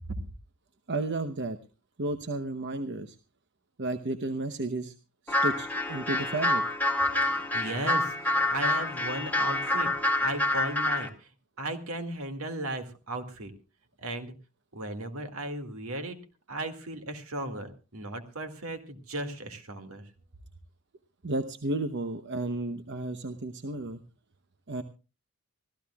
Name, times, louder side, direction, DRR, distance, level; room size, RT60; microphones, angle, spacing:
voice 1, 0.9-1.6 2.0-3.2 3.8-4.9 5.2-6.6 21.2-24.0 24.7-24.8, right 2 dB, 55° right, 9 dB, 0.9 m, -32 dB
sound 1, 5.3-11.1, left 2 dB, 10° left, 2.0 m, -27 dB
voice 2, 7.2-11.3 11.6-13.5 14.0-14.3 14.7-16.2 16.5-20.0, right 1 dB, 70° right, 7 dB, 2.3 m, -36 dB
25.5 x 15.0 x 2.4 m, 0.33 s
head